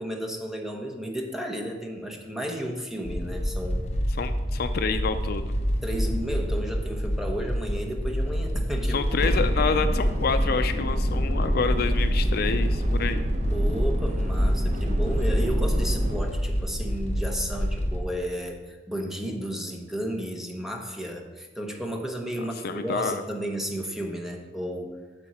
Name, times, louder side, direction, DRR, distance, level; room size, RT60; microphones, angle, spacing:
voice 1, 0.0-3.9 5.8-9.0 13.5-24.9, equal, ahead, 2 dB, 1.0 m, -33 dB
sound 1, 3.0-18.0, equal, 40° left, 1.1 m, -27 dB
voice 2, 4.2-5.5 8.9-13.3 22.6-23.2, left 5 dB, 55° left, 9 dB, 0.4 m, -28 dB
sound 2, 9.2-16.2, equal, 45° right, 0.9 m, -28 dB
9.5 x 7.1 x 4.2 m, 1.3 s
head